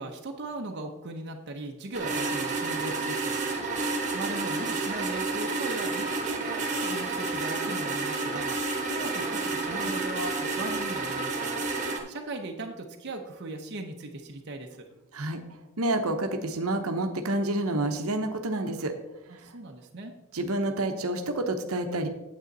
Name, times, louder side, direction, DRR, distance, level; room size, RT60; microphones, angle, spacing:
voice 1, 0.0-3.4 3.8-11.5 11.8-14.9 19.3-20.1, right 2 dB, 50° right, 2 dB, 0.8 m, -38 dB
sound 1, 1.9-12.0, right 3 dB, 35° right, 1.4 m, -30 dB
voice 2, 15.8-18.9 19.3-19.5 20.3-22.1, right 1 dB, 75° right, 6 dB, 1.0 m, -28 dB
9.2 x 7.8 x 4.0 m, 0.97 s
head